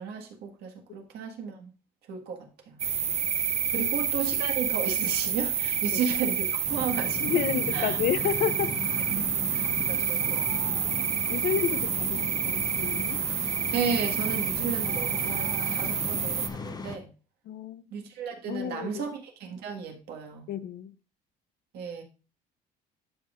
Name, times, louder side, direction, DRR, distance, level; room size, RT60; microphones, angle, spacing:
voice 1, 0.0-1.7 2.1-2.8 3.7-7.5 7.7-8.0 9.1-10.8 11.4-11.5 13.7-17.1 17.9-20.5 21.7-22.0, right 6 dB, 75° right, 1.7 m, -34 dB
sound 1, 2.8-16.5, right 8 dB, 40° right, 0.6 m, -28 dB
sound 2, 6.7-17.0, left 4 dB, 25° left, 0.7 m, -38 dB
voice 2, 7.2-8.8 11.3-13.2 17.5-17.9 18.5-19.0 20.5-20.9, left 10 dB, 65° left, 0.6 m, -30 dB
11.5 x 5.4 x 2.5 m
cardioid pair, 110°, 17 cm